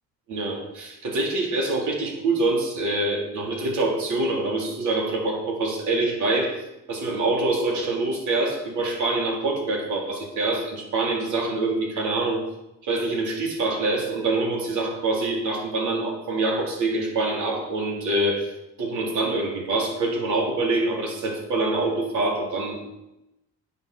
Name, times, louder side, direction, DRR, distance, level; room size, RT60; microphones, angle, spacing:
voice 1, 0.3-12.4 12.8-18.5 18.8-22.8, right 2 dB, 75° right, 0 dB, 3.5 m, -25 dB
9.5 x 8.2 x 6.6 m, 0.91 s
cardioid pair, 90°, 30 cm